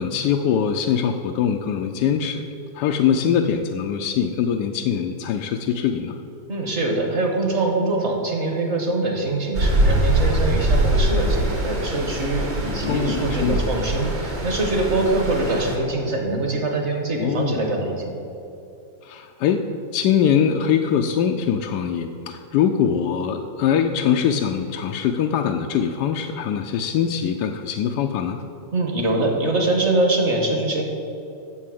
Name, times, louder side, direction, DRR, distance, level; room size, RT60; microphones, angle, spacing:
voice 1, 0.0-2.4 2.7-6.2 12.8-13.7 17.2-17.7 19.0-19.7 19.9-28.4, left 8 dB, 75° left, 4 dB, 1.0 m, -22 dB
voice 2, 6.5-18.1 28.7-30.8, right 2 dB, 40° right, 2 dB, 1.5 m, -23 dB
Stream, 9.5-15.8, right 1 dB, 60° right, 2.7 m, -23 dB
8.5 x 7.2 x 7.6 m, 2.8 s
omnidirectional pair, 2.1 m